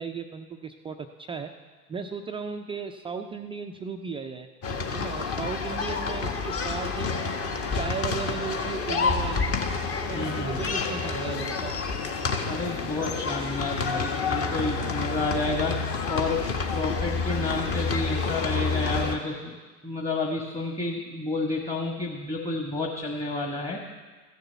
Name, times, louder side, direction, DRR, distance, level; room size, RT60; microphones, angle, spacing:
voice 1, 0.0-1.5 1.9-4.5 4.9-7.1 7.7-9.5 9.9-11.8, right 5 dB, 15° right, 4 dB, 0.4 m, -36 dB
sound 1, 4.6-19.2, left 4 dB, 30° left, 1.5 m, -29 dB
voice 2, 10.1-10.6 12.5-15.8 16.1-19.6 19.8-23.8, left 2 dB, 15° left, 0 dB, 1.5 m, -30 dB
14.5 x 6.7 x 8.0 m, 1.4 s
hypercardioid pair, 95°, 44 cm